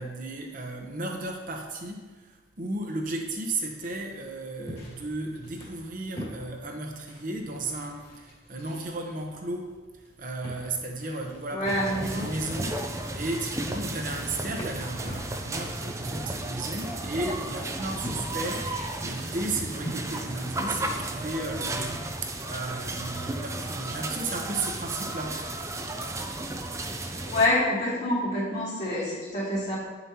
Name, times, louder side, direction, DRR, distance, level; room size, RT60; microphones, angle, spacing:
voice 1, 0.0-9.7 10.2-25.4 27.0-27.1, right 2 dB, 45° right, 2 dB, 1.0 m, -34 dB
sound 1, 3.8-21.5, equal, 30° left, 2.2 m, -45 dB
voice 2, 11.5-12.3 27.3-29.7, left 1 dB, 50° left, -15 dB, 2.7 m, -26 dB
sound 2, 11.6-27.5, right 2 dB, 15° right, 0.5 m, -34 dB
9.1 x 6.9 x 3.0 m, 1.3 s
head